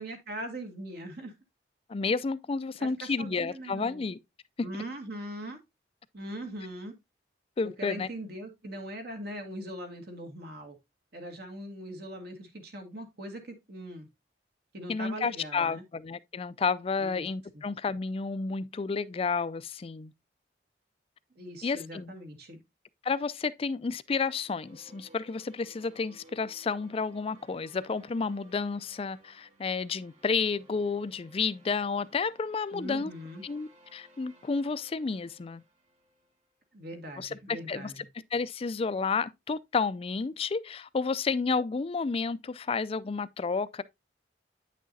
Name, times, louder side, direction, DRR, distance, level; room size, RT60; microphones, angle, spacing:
voice 1, 0.0-1.3 2.8-4.0 4.6-5.6 6.1-6.9 7.8-10.8 11.1-14.1 14.7-15.8 17.0-17.3 17.5-17.6 21.4-22.6 32.7-33.4 36.7-38.1, right 1 dB, 60° right, 2.0 m, -41 dB
voice 2, 1.9-4.2 4.6-4.7 7.6-8.1 14.9-20.1 21.6-22.1 23.0-33.1 33.4-35.6 37.2-38.1 38.3-43.8, left 4 dB, 35° left, 0.4 m, -31 dB
sound 1, 24.1-36.5, right 1 dB, 40° right, 3.4 m, -59 dB
9.0 x 6.3 x 2.7 m
head